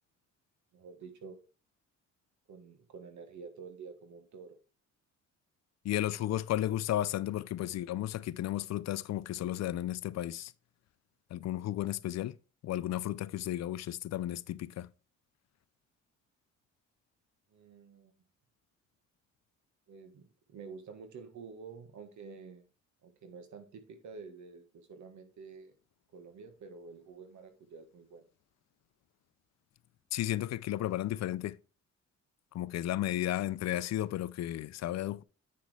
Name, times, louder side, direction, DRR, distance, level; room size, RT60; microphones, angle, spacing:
voice 1, 0.7-1.4 2.5-4.6 17.5-18.1 19.9-22.6 23.0-25.7 26.1-28.2, right 5 dB, 70° right, 1.5 m, -49 dB
voice 2, 5.8-10.5 11.3-12.4 12.6-14.9 30.1-31.6 32.5-35.2, left 13 dB, 60° left, 0.5 m, -33 dB
8.5 x 6.2 x 3.3 m
cardioid pair, 90°, 30 cm